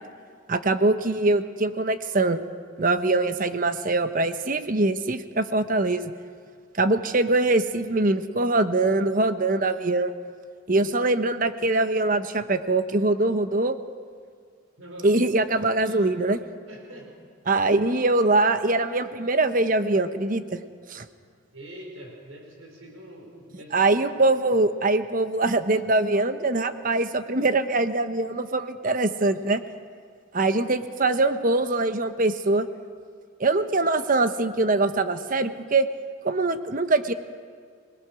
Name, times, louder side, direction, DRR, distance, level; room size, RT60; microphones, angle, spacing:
voice 1, 0.5-2.4 2.8-6.1 6.7-10.1 10.7-13.7 15.0-16.4 17.5-20.6 20.9-21.0 23.7-29.6 30.3-32.7 33.4-35.9 36.2-37.1, right 2 dB, 40° right, 10 dB, 1.0 m, -23 dB
voice 2, 14.8-15.2 15.8-16.1 16.7-17.1 21.5-23.9, equal, 90° right, 0 dB, 5.2 m, -43 dB
26.5 x 19.5 x 6.3 m, 2.1 s
head